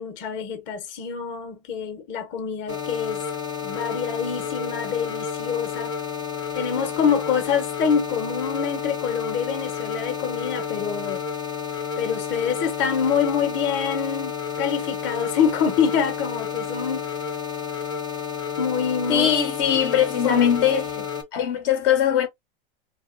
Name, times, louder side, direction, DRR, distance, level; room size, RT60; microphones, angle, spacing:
voice 1, 0.0-3.2 3.6-5.9 6.5-11.2 12.0-17.1 18.6-19.3 19.7-19.8 20.2-20.5 20.7-20.8, left 7 dB, 40° left, 0.9 m, -26 dB
sound 1, 2.7-21.2, left 7 dB, 15° left, 0.7 m, -31 dB
voice 2, 19.1-20.8 21.3-22.3, left 9 dB, 65° left, 0.9 m, -20 dB
2.9 x 2.4 x 2.4 m
hypercardioid pair, 110°, 30 cm